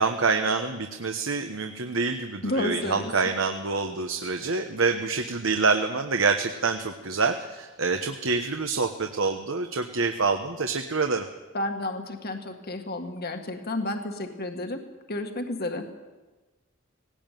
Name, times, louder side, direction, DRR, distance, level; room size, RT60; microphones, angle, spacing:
voice 1, 0.0-11.3, right 4 dB, 75° right, 6 dB, 1.2 m, -26 dB
voice 2, 2.4-3.1 11.5-14.8 15.1-15.9, left 1 dB, 50° left, 5 dB, 1.8 m, -31 dB
19.0 x 18.0 x 9.2 m, 1.2 s
head